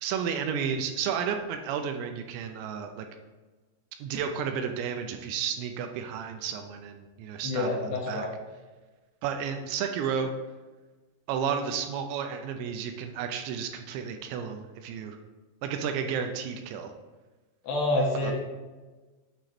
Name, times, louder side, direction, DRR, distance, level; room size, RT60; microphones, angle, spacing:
voice 1, 0.0-3.1 4.0-7.7 8.1-8.3 9.2-10.3 11.3-15.2 15.6-16.9 18.2-18.3, right 7 dB, 85° right, 6 dB, 2.7 m, -32 dB
voice 2, 7.4-8.3 17.6-18.3, left 2 dB, 75° left, -2 dB, 3.0 m, -27 dB
8.8 x 3.0 x 4.2 m, 1.2 s
omnidirectional pair, 5.3 m